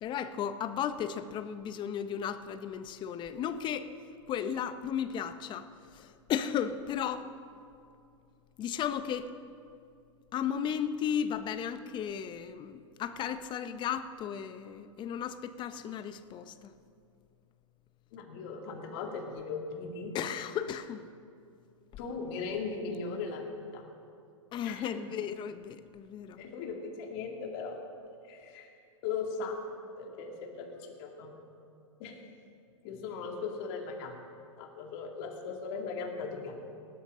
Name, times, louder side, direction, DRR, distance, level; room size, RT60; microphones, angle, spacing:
voice 1, 0.0-3.9 4.3-5.7 5.9-7.3 8.6-9.3 10.3-16.7 20.1-21.0 24.5-26.4, left 8 dB, 30° left, 11 dB, 0.7 m, -35 dB
voice 2, 18.1-20.2 22.0-23.9 24.6-24.9 26.4-27.8 28.2-28.7 29.0-29.6 30.0-31.4 32.0-32.2 32.8-34.2 34.6-36.6, left 5 dB, 50° left, 1 dB, 2.3 m, -38 dB
18.5 x 12.5 x 3.7 m, 2.4 s
hypercardioid pair, 115°, 16 cm